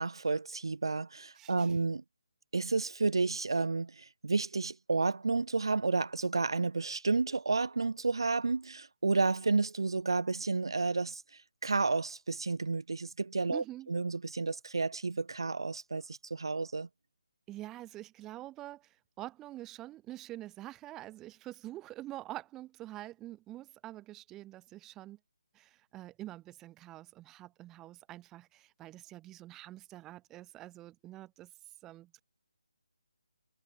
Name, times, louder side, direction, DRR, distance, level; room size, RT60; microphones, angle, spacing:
voice 1, 0.0-2.0 2.5-3.9 4.2-11.2 11.6-16.9, right 3 dB, 60° right, 0.5 m, -31 dB
voice 2, 1.4-1.8 13.5-13.9 17.5-25.2 25.5-31.5 31.8-32.2, right 15 dB, 10° right, 5.6 m, -46 dB
figure-of-eight pair, 145°, 3 cm